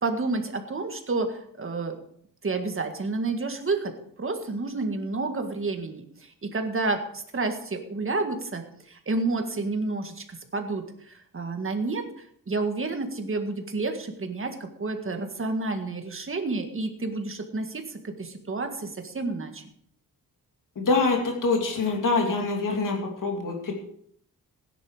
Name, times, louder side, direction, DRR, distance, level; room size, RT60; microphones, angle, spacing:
voice 1, 0.0-2.0 2.4-3.9 4.2-19.6, right 3 dB, 35° right, 5 dB, 1.8 m, -30 dB
voice 2, 20.8-23.7, left 3 dB, 55° left, 1 dB, 2.8 m, -25 dB
16.5 x 10.5 x 4.9 m, 0.66 s
wide cardioid pair, 150°, 37 cm